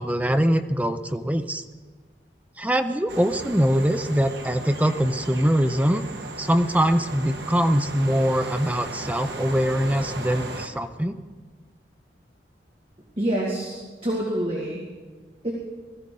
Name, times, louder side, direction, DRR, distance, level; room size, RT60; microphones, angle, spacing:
voice 1, 0.0-1.6 2.6-6.0 6.4-11.2, equal, 10° right, 8 dB, 0.6 m, -23 dB
sound 1, 3.1-10.7, right 2 dB, 65° right, 1.4 m, -36 dB
voice 2, 13.2-14.8 15.4-15.5, right 1 dB, 35° right, -3 dB, 2.1 m, -27 dB
20.5 x 14.0 x 3.8 m, 1.4 s
head